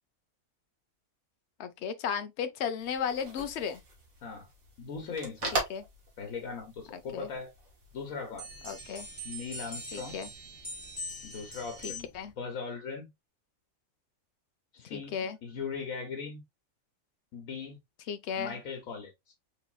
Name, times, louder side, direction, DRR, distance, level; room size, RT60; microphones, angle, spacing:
voice 1, 1.6-3.8 5.7-5.8 7.1-7.3 8.6-9.1 9.9-10.3 11.8-12.3 14.9-15.4 18.1-18.6, left 7 dB, 65° left, 0.9 m, -34 dB
sound 1, 2.8-8.8, right 2 dB, 90° right, 2.0 m, -40 dB
voice 2, 4.8-5.6 6.2-7.5 7.9-8.5 9.2-10.2 11.2-12.1 12.4-13.1 14.7-15.1 15.4-16.4 17.3-17.8 18.3-19.3, left 5 dB, 85° left, 1.4 m, -39 dB
sound 2, 8.4-12.3, equal, 15° left, 1.9 m, -42 dB
4.1 x 4.0 x 2.3 m
omnidirectional pair, 1.4 m